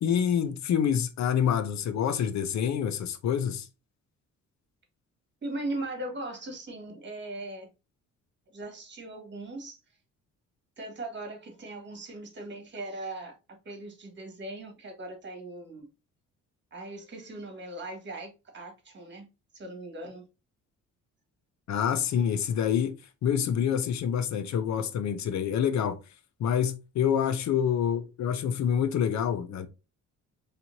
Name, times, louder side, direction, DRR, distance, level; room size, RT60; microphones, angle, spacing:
voice 1, 0.0-3.7 21.7-22.9 23.2-26.0 26.4-29.7, left 8 dB, 65° left, 0.7 m, -27 dB
voice 2, 5.4-7.7 8.5-9.8 10.8-15.9 16.7-19.3 19.5-20.2 27.8-27.9, right 2 dB, 40° right, 1.8 m, -39 dB
4.3 x 3.4 x 2.7 m
cardioid pair, 90°, 30 cm